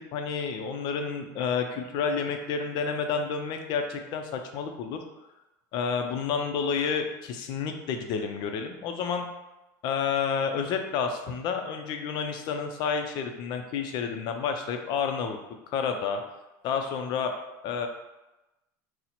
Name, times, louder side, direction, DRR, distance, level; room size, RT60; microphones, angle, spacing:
voice 1, 0.1-5.0 5.7-9.3 9.8-15.4 15.7-16.2 16.6-17.3 17.6-17.9, left 6 dB, 50° left, 5 dB, 0.5 m, -30 dB
2.8 x 2.1 x 4.0 m, 1.0 s
supercardioid pair, 125°, 10 cm